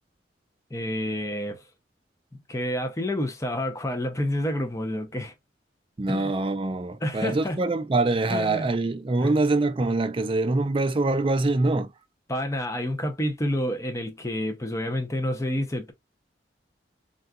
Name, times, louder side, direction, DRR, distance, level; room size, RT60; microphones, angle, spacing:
voice 1, 0.7-1.6 2.5-5.3 6.1-6.3 7.0-7.6 8.3-8.7 9.2-9.3 12.3-15.9, left 1 dB, 15° left, 0.6 m, -29 dB
voice 2, 6.0-11.9, right 2 dB, 30° right, 0.4 m, -24 dB
3.8 x 2.3 x 2.2 m
head